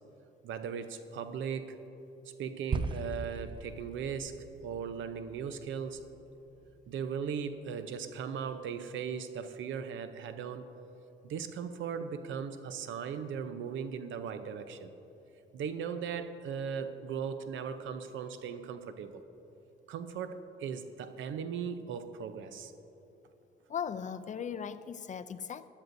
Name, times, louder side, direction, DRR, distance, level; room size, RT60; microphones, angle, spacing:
voice 1, 0.4-1.8 2.2-4.3 4.6-6.0 6.9-10.7 11.2-14.9 15.5-19.2 19.9-22.7, right 7 dB, 75° right, 10 dB, 0.7 m, -38 dB
sound 1, 2.7-7.1, right 3 dB, 25° right, 0.6 m, -39 dB
voice 2, 23.7-25.7, left 7 dB, 40° left, 13 dB, 0.4 m, -38 dB
15.5 x 11.0 x 2.6 m, 3.0 s
cardioid pair, 90°, 20 cm